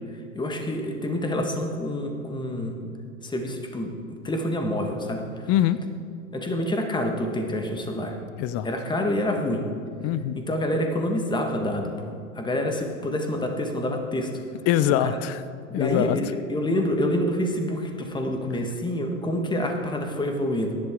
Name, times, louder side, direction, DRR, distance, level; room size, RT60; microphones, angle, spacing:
voice 1, 0.3-2.8 3.2-5.5 6.3-8.1 8.6-9.7 10.5-14.3 15.0-15.2 15.7-20.7, left 1 dB, 10° left, 3 dB, 1.6 m, -27 dB
voice 2, 5.5-5.8 8.4-8.7 10.0-10.4 14.7-15.4 15.7-16.2, left 11 dB, 35° left, 14 dB, 0.6 m, -23 dB
16.5 x 11.0 x 3.8 m, 2.3 s
hypercardioid pair, 100°, 40 cm